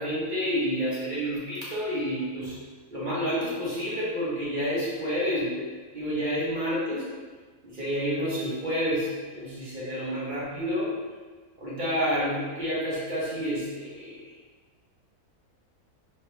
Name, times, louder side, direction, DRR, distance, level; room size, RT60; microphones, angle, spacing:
voice 1, 0.0-2.6 2.9-5.7 5.9-7.1 7.6-10.9 11.6-14.3, equal, 40° right, -8 dB, 0.8 m, -29 dB
3.2 x 2.0 x 3.0 m, 1.4 s
omnidirectional pair, 1.6 m